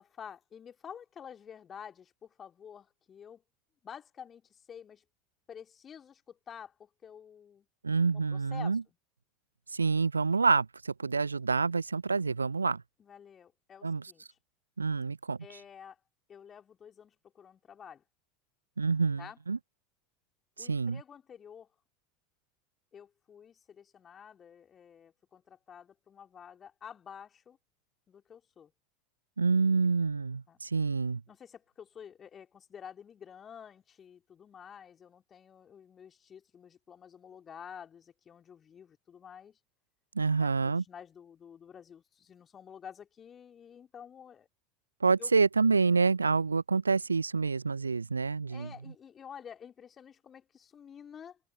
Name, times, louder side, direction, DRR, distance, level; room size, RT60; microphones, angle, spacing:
voice 1, 0.0-3.4 3.8-5.0 5.5-7.7 8.1-8.8 13.0-14.2 15.4-16.0 16.3-18.0 19.2-19.4 20.6-21.7 22.9-27.6 28.1-28.7 30.5-30.6 31.3-39.6 40.4-44.5 45.2-45.3 48.5-51.4, left 8 dB, 25° left, 2.5 m, -50 dB
voice 2, 7.8-8.8 9.7-12.8 13.8-14.0 14.8-15.4 18.8-19.6 20.6-21.0 29.4-31.2 40.2-40.8 45.0-48.7, right 4 dB, 80° right, 0.4 m, -27 dB
open air
figure-of-eight pair, 80°, 0 cm